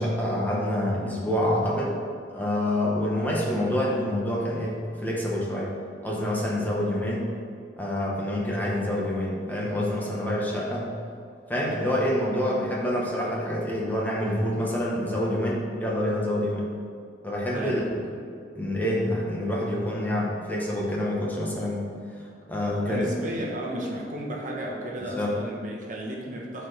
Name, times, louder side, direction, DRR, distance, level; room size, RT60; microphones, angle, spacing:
voice 1, 0.0-2.0 2.3-5.7 6.0-7.3 7.8-10.9 11.5-16.7 17.2-18.0 18.5-21.8 22.5-23.0 25.1-25.3, left 1 dB, 10° left, -4 dB, 1.1 m, -27 dB
voice 2, 17.5-18.1 22.9-26.7, right 1 dB, 45° right, -2 dB, 1.2 m, -33 dB
11.5 x 4.6 x 3.3 m, 2.4 s
head